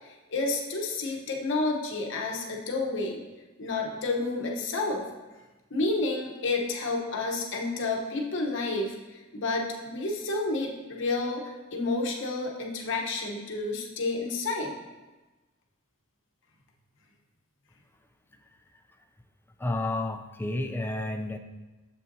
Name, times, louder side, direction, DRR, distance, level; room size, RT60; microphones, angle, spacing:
voice 1, 0.0-3.2 3.6-5.1 5.7-14.7, left 3 dB, 60° left, 0 dB, 0.9 m, -30 dB
voice 2, 19.6-21.4, left 2 dB, 10° left, 5 dB, 0.3 m, -30 dB
7.4 x 5.6 x 2.6 m, 1.2 s
head